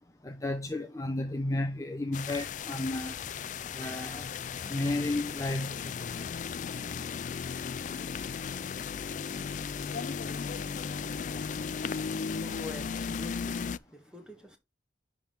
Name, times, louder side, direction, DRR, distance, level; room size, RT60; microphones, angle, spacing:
voice 1, 0.2-3.2 3.7-4.3 4.6-5.9, left 2 dB, 20° left, 0.7 m, -32 dB
sound 1, 2.1-13.8, left 6 dB, 45° left, 0.3 m, -36 dB
voice 2, 11.6-14.6, left 2 dB, 5° right, 1.4 m, -46 dB
10.5 x 3.7 x 4.3 m
head